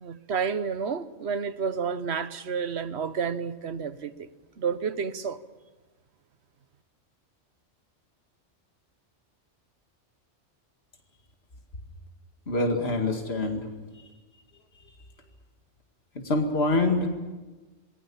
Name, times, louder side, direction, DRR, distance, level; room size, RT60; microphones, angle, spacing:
voice 1, 0.0-4.1 4.6-5.4, right 6 dB, 60° right, 1.2 m, -30 dB
voice 2, 12.5-13.7 16.1-17.1, left 2 dB, 55° left, 2.5 m, -25 dB
28.0 x 20.5 x 7.1 m
omnidirectional pair, 1.2 m